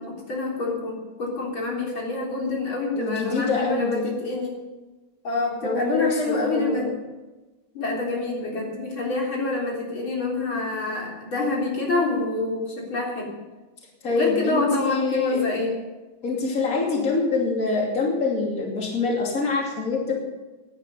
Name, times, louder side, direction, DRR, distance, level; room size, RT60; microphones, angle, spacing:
voice 1, 0.0-4.6 5.2-6.9 7.7-13.3 14.1-15.8, left 2 dB, 85° left, -2 dB, 4.5 m, -27 dB
voice 2, 2.9-4.1 5.6-6.9 14.0-15.5 16.2-20.1, left 4 dB, 45° left, -1 dB, 3.1 m, -25 dB
17.0 x 10.5 x 5.4 m, 1.2 s
omnidirectional pair, 2.2 m